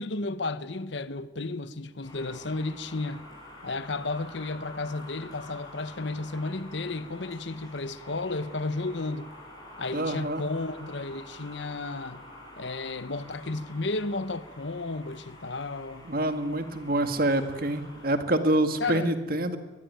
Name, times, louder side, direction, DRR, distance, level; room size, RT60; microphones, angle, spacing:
voice 1, 0.0-3.2 3.6-9.3 9.8-12.2 12.6-16.1 18.8-19.1, left 3 dB, 65° left, 1.0 m, -33 dB
sound 1, 2.0-18.2, left 1 dB, 20° left, 7.4 m, -47 dB
voice 2, 9.9-10.4 16.1-19.6, right 1 dB, 50° right, 2.1 m, -26 dB
22.5 x 21.0 x 9.4 m
head